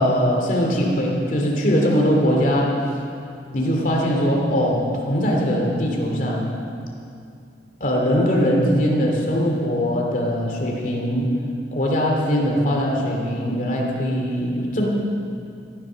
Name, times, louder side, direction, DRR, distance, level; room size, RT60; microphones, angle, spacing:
voice 1, 0.0-2.7 3.5-6.5 7.8-11.3 11.7-14.9, equal, 45° left, -1 dB, 2.8 m, -21 dB
15.5 x 11.5 x 6.4 m, 2.5 s
head